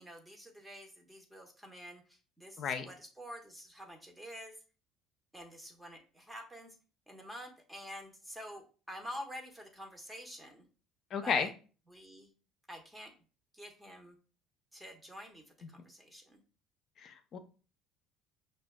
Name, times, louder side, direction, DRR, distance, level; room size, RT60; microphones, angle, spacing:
voice 1, 0.0-4.6 5.3-6.8 7.1-10.6 11.2-11.5 11.9-12.3 12.7-13.1 13.5-14.2 14.7-15.4 15.7-16.4, equal, 10° right, 2 dB, 1.0 m, -48 dB
voice 2, 2.6-2.9 11.1-11.5 17.0-17.4, left 6 dB, 50° left, 9 dB, 0.6 m, -33 dB
5.9 x 2.3 x 2.2 m, 0.37 s
hypercardioid pair, 70°, 0 cm